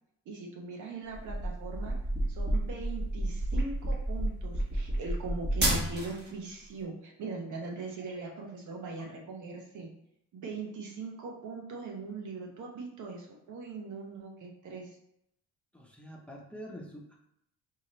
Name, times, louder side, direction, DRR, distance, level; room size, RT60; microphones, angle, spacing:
voice 1, 0.3-2.0 2.3-9.9 10.3-15.0, right 3 dB, 75° right, 1 dB, 1.0 m, -40 dB
sound 1, 1.1-6.3, right 1 dB, 35° right, 1.7 m, -30 dB
voice 2, 15.7-17.2, equal, 5° left, -1 dB, 1.0 m, -46 dB
5.3 x 2.8 x 3.2 m, 0.76 s
cardioid pair, 90°, 30 cm